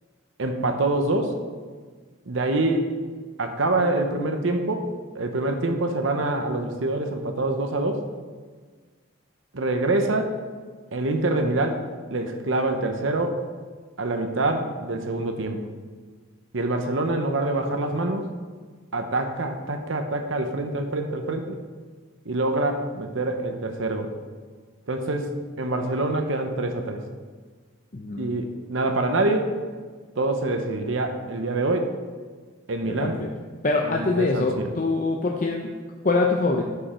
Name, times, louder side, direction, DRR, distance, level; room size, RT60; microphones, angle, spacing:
voice 1, 0.4-1.3 2.3-2.9 3.4-4.8 5.1-8.0 9.5-10.3 10.9-11.8 12.1-13.4 14.0-15.6 16.5-18.3 18.9-21.6 22.3-24.1 24.9-27.0 28.2-29.5 30.2-31.9 32.7-33.2 33.8-34.7, right 2 dB, 70° right, 5 dB, 0.9 m, -25 dB
voice 2, 27.9-28.3 32.8-33.3 33.6-35.7 36.0-36.6, left 3 dB, 40° left, 0 dB, 0.6 m, -24 dB
11.5 x 5.4 x 4.4 m, 1.5 s
head